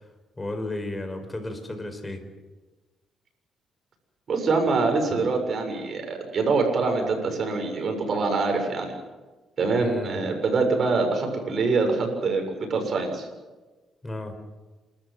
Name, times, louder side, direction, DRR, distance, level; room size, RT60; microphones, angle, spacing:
voice 1, 0.4-2.2 9.8-10.2 14.0-14.3, left 2 dB, 20° left, 7 dB, 5.0 m, -33 dB
voice 2, 4.3-8.9 9.6-13.3, right 3 dB, 55° right, 4 dB, 7.3 m, -24 dB
28.5 x 14.0 x 9.6 m, 1.2 s
cardioid pair, 90°, 0 cm